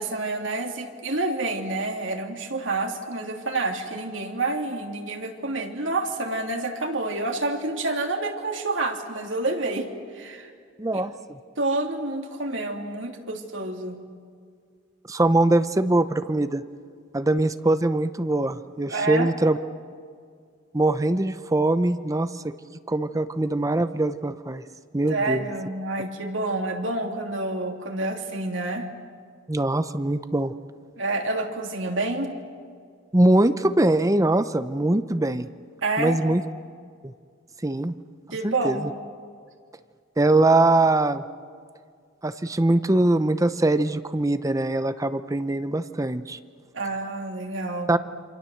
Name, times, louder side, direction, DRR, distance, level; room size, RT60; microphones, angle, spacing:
voice 1, 0.0-9.9 10.1-10.5 10.9-11.0 11.6-14.0 18.9-19.3 25.1-28.9 31.0-32.3 35.8-36.2 38.3-38.9 46.7-47.9, right 2 dB, 70° right, 3 dB, 3.0 m, -28 dB
voice 2, 10.8-11.4 15.1-16.6 17.1-19.6 20.7-22.5 22.9-24.6 24.9-25.4 29.5-30.5 33.1-35.5 36.0-36.4 37.6-37.9 38.4-38.9 40.2-41.2 42.2-46.4 47.9-48.0, right 2 dB, 15° right, 12 dB, 0.7 m, -22 dB
28.0 x 26.5 x 7.9 m, 2.1 s
head